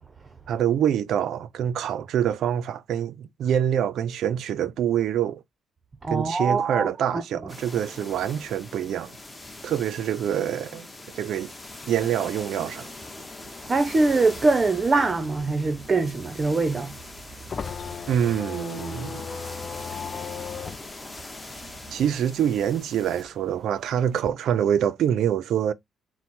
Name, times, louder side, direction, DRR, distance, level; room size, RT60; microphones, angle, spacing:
voice 1, 0.5-5.4 6.1-9.1 9.6-10.9 11.1-11.5 11.9-12.9 18.1-19.2 21.9-25.7, right 9 dB, 70° right, 0.5 m, -25 dB
voice 2, 6.0-7.5 13.6-16.9, right 3 dB, 25° right, 0.6 m, -23 dB
sound 1, 7.5-23.2, left 2 dB, 15° left, 0.9 m, -42 dB
sound 2, 15.3-22.2 22.5-24.3, left 6 dB, 35° left, 0.5 m, -37 dB
4.4 x 2.1 x 4.2 m
cardioid pair, 120°, 0 cm